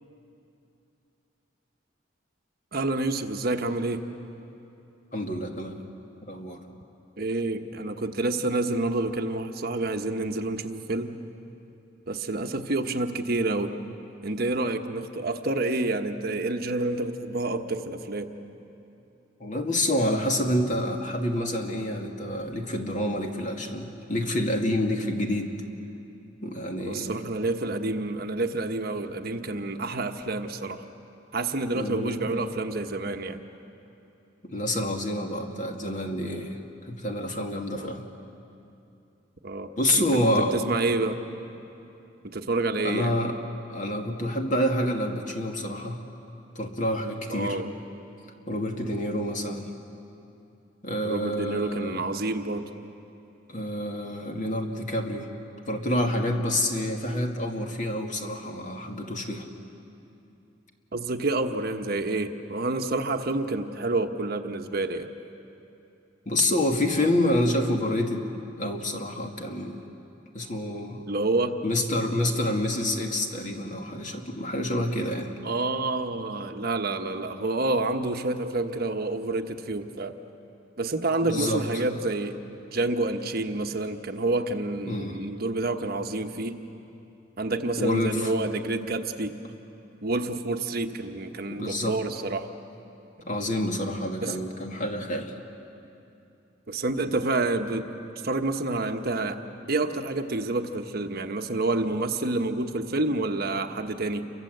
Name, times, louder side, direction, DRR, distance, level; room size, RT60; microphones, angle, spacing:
voice 1, 2.7-4.0 7.2-11.2 12.1-13.8 14.2-18.3 26.8-30.8 31.3-33.4 37.7-37.9 39.4-40.1 40.4-41.2 42.3-43.1 47.3-47.7 51.0-52.7 60.9-65.1 71.1-71.6 75.4-80.1 80.8-82.5 82.7-86.6 87.4-89.4 90.0-92.5 94.2-94.4 96.7-97.9 98.2-99.4 99.7-104.3, right 2 dB, 55° right, 6 dB, 1.2 m, -28 dB
voice 2, 5.1-5.8 6.3-6.6 19.4-25.5 26.4-27.2 31.8-32.2 34.4-38.1 39.8-40.6 42.8-43.4 43.7-46.0 46.6-47.6 48.5-49.7 50.8-52.0 53.5-55.3 55.7-59.5 66.3-68.3 68.6-69.8 70.3-71.0 71.6-75.3 81.3-81.9 84.9-85.2 87.8-88.3 91.5-92.0 93.2-95.3, left 1 dB, 40° left, 3 dB, 2.2 m, -28 dB
29.0 x 24.0 x 7.9 m, 2.8 s
head